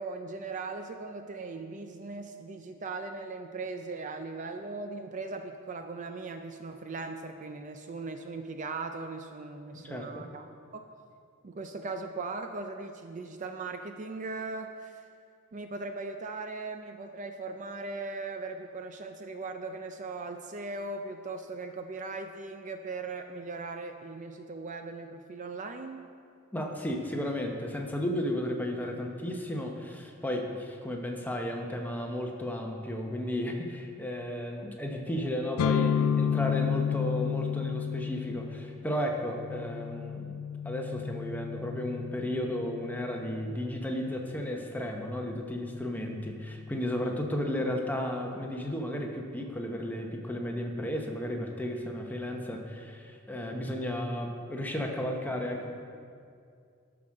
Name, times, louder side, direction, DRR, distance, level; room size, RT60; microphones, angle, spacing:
voice 1, 0.0-10.5 10.7-10.8 11.4-15.0 15.5-26.1, right 3 dB, 35° right, 6 dB, 0.4 m, -39 dB
voice 2, 9.8-10.3 26.5-55.7, left 1 dB, 10° left, 1 dB, 0.8 m, -34 dB
sound 1, 35.6-43.4, left 8 dB, 85° left, 0.3 m, -31 dB
11.0 x 6.0 x 6.3 m, 2.3 s
head